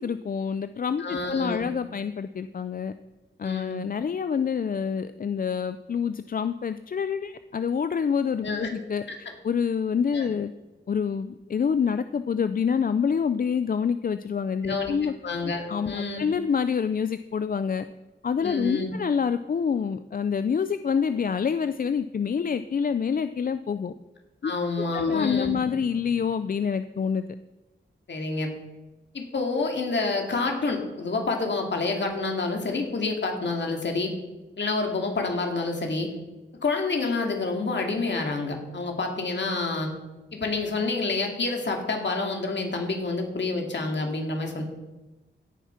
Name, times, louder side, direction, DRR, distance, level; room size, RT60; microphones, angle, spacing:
voice 1, 0.0-2.9 3.4-9.0 9.4-10.5 10.9-15.1 15.7-17.8 18.2-23.9 24.4-24.5 24.9-27.3, left 6 dB, 45° left, 12 dB, 0.4 m, -27 dB
voice 2, 1.0-1.6 3.4-3.8 8.4-8.7 10.1-10.3 14.7-14.9 15.2-16.2 18.4-18.9 24.4-25.6 28.1-28.5 29.1-34.1 34.6-36.1 36.6-39.9 40.3-44.6, left 3 dB, 60° left, 2 dB, 2.5 m, -28 dB
16.5 x 7.3 x 5.8 m, 1.1 s
wide cardioid pair, 125°, 20 cm